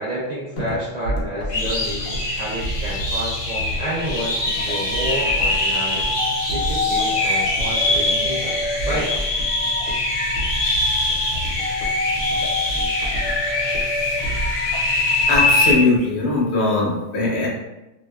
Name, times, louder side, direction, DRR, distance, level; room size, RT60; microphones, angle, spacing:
voice 1, 0.0-2.1 2.4-6.1 6.5-8.6 8.9-9.1, equal, 60° right, -6 dB, 0.4 m, -29 dB
sound 1, 0.6-16.0, right 1 dB, 90° left, 1.1 m, -31 dB
sound 2, 1.5-15.7, left 2 dB, 50° left, 0.4 m, -22 dB
voice 2, 15.3-17.5, left 3 dB, 65° left, -4 dB, 1.0 m, -20 dB
2.7 x 2.2 x 2.2 m, 0.98 s
omnidirectional pair, 1.2 m